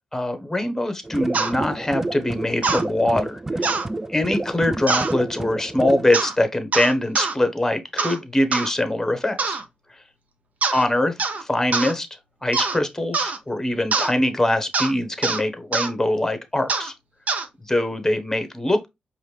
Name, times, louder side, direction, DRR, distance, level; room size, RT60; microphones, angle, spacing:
voice 1, 0.1-3.7 4.1-9.6 10.7-12.1 12.4-16.9 17.7-18.9, left 1 dB, 15° left, 1.0 m, -23 dB
sound 1, 1.0-6.1, right 2 dB, 15° right, 0.3 m, -29 dB
sound 2, 1.3-1.5 2.6-2.8 3.6-3.9 4.9-5.1 6.1-6.4 6.7-7.3 8.0-8.2 8.5-8.7 9.4-9.6 10.6-10.9 11.2-11.4 11.7-11.9 12.5-12.8 13.1-13.4 13.9-14.1 14.7-14.9 15.2-15.4 15.7-15.9 16.7-16.9 17.3-17.5, right 4 dB, 55° right, 0.8 m, -23 dB
5.0 x 2.7 x 3.2 m
cardioid pair, 65°, 3 cm